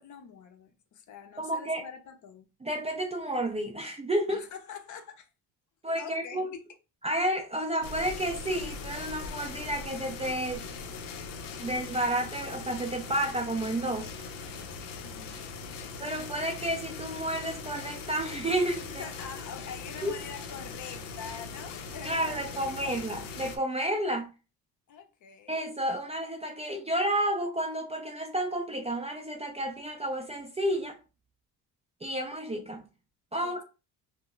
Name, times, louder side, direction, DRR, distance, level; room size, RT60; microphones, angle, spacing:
voice 1, 0.0-2.5 4.3-5.3 6.0-6.6 15.0-15.4 15.7-15.9 18.9-22.9 24.9-25.6 33.4-33.5, left 6 dB, 50° left, 0.6 m, -45 dB
voice 2, 1.4-1.8 2.6-4.4 5.8-6.5 7.0-10.6 11.6-14.1 16.0-19.1 20.0-20.1 22.0-24.3 25.5-31.0 32.0-32.9 33.3-33.6, right 1 dB, 15° right, 0.4 m, -31 dB
sound 1, 7.8-23.6, left 4 dB, 85° left, 0.6 m, -40 dB
2.1 x 2.1 x 3.7 m
cardioid pair, 105°, 40 cm